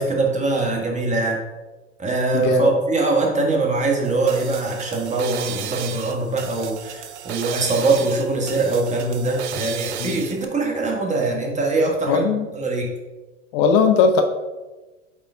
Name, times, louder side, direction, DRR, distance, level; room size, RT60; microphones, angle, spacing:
voice 1, 0.0-1.4 2.0-12.2 12.5-13.0, right 3 dB, 20° right, 0 dB, 1.5 m, -22 dB
voice 2, 2.3-2.7 10.0-10.2 12.1-12.5 13.5-14.2, left 5 dB, 50° left, 6 dB, 0.7 m, -18 dB
sound 1, 4.0-10.4, right 8 dB, 70° right, 0.6 m, -34 dB
8.2 x 3.9 x 3.5 m, 1.2 s
figure-of-eight pair, 85°, 36 cm